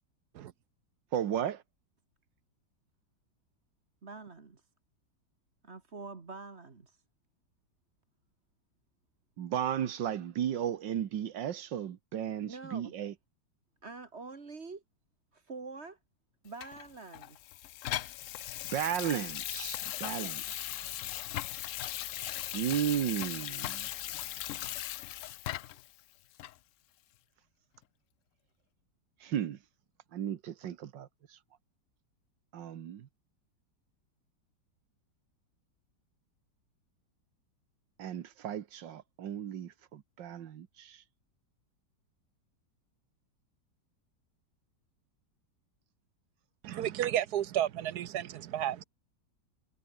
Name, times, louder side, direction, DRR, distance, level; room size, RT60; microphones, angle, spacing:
voice 1, 1.1-1.6 9.4-13.1 18.7-20.9 22.5-23.9 29.2-29.6 30.1-31.4 32.5-33.1 38.0-41.0, right 10 dB, 85° right, 1.8 m, -35 dB
voice 2, 4.0-4.6 5.6-7.0 12.5-13.0 13.8-14.8 15.3-16.0 16.4-17.4 20.2-20.3, right 4 dB, 35° right, 2.1 m, -46 dB
Water tap faucet / Sink (filling or washing), 16.6-25.9 26.4-26.5, left 14 dB, 80° left, 0.7 m, -38 dB
voice 3, 46.6-48.8, right 11 dB, 65° right, 1.3 m, -32 dB
omnidirectional pair, 1.9 m